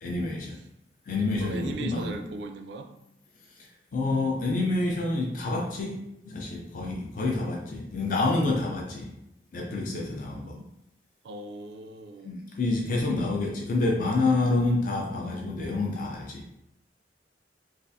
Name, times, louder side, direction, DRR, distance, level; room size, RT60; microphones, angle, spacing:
voice 1, 0.0-0.6 1.1-2.2 3.5-9.1 9.5-10.6 12.2-16.5, left 2 dB, 50° left, -2 dB, 0.4 m, -28 dB
voice 2, 1.4-2.9 11.2-12.3, right 3 dB, 70° right, 6 dB, 0.3 m, -38 dB
3.3 x 2.4 x 2.6 m, 0.84 s
head